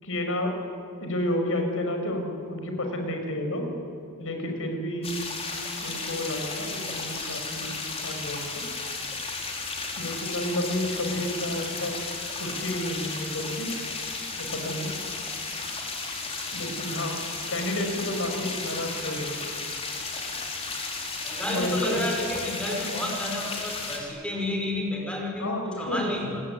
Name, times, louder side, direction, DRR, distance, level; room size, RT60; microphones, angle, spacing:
voice 1, 0.0-0.5 1.0-3.7 4.2-5.1 5.8-8.6 10.0-11.9 12.4-13.7 14.4-14.9 16.5-17.2 17.5-19.4 21.5-22.0 25.4-26.1, left 1 dB, 65° left, 4 dB, 5.9 m, -30 dB
sound 1, 5.0-24.0, left 3 dB, 25° left, 4.6 m, -34 dB
voice 2, 21.2-26.4, left 1 dB, 5° left, 1 dB, 5.4 m, -31 dB
30.0 x 20.0 x 9.9 m, 2.5 s
head